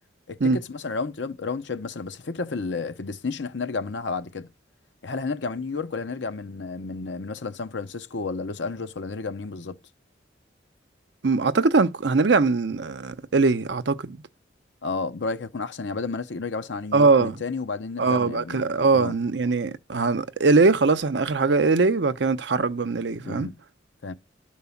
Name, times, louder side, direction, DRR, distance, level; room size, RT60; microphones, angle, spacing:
voice 1, 0.3-4.5 5.0-9.8 14.8-19.2 23.2-23.5 24.0-24.1, left 4 dB, 70° left, 0.8 m, -31 dB
voice 2, 11.2-14.2 16.9-17.4 18.0-23.5, right 4 dB, 65° right, 0.6 m, -21 dB
12.0 x 4.6 x 7.1 m
head